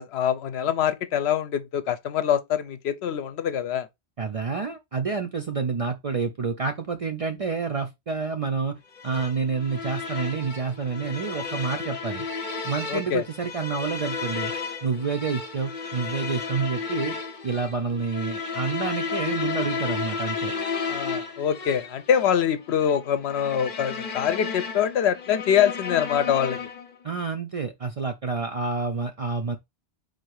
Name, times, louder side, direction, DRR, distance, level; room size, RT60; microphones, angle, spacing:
voice 1, 0.0-3.9 12.9-13.2 20.9-26.6, left 9 dB, 75° left, 0.9 m, -24 dB
voice 2, 4.2-8.8 9.0-12.3 12.6-14.5 14.8-17.2 17.4-20.5 27.0-29.6, right 5 dB, 50° right, 0.4 m, -28 dB
sound 1, 8.9-27.0, left 5 dB, 45° left, 0.8 m, -33 dB
4.0 x 2.6 x 4.7 m
omnidirectional pair, 1.1 m